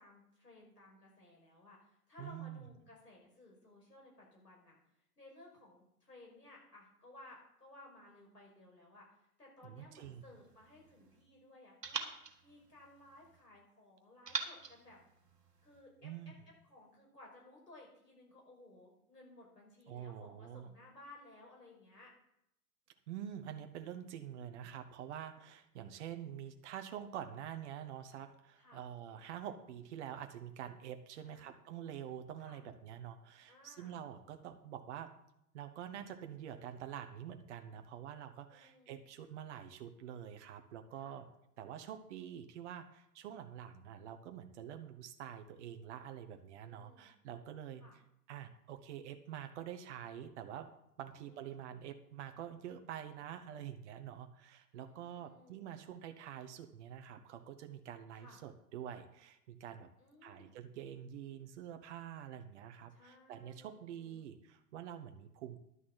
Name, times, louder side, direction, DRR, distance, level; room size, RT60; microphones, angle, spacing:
voice 1, 0.0-4.8 5.2-9.1 9.4-15.0 15.6-16.3 16.6-22.1 28.6-28.8 31.2-31.5 32.4-32.6 33.5-33.9 38.5-39.0 40.9-41.2 46.6-47.1 47.8-48.0 51.1-51.5 54.8-55.7 58.1-58.4 60.0-60.6 62.9-64.3, left 2 dB, 85° left, -2 dB, 5.8 m, -59 dB
voice 2, 2.2-2.6 9.6-10.2 16.0-16.3 19.9-20.7 23.1-35.1 35.5-41.3 41.6-47.8 48.3-50.7 51.0-59.9 60.2-65.6, right 10 dB, 45° right, 7 dB, 1.2 m, -47 dB
sound 1, 10.0-11.2 11.8-13.4 14.3-15.8, right 5 dB, 80° right, 1.7 m, -45 dB
11.0 x 6.3 x 7.5 m, 0.79 s
figure-of-eight pair, 110°, 47 cm